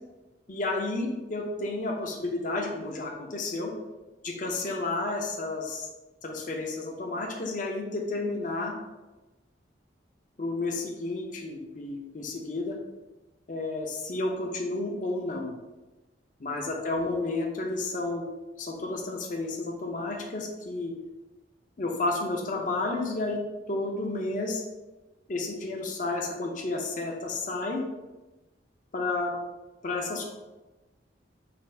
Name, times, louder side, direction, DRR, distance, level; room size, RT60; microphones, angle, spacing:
voice 1, 0.5-3.7 4.2-5.9 6.2-8.7 10.4-12.8 13.5-15.5 16.4-18.2 18.6-20.9 21.8-23.4 23.7-24.6 25.3-27.8 28.9-29.3 29.8-30.3, left 2 dB, 45° left, 1 dB, 0.6 m, -31 dB
4.2 x 2.4 x 3.8 m, 1.1 s
head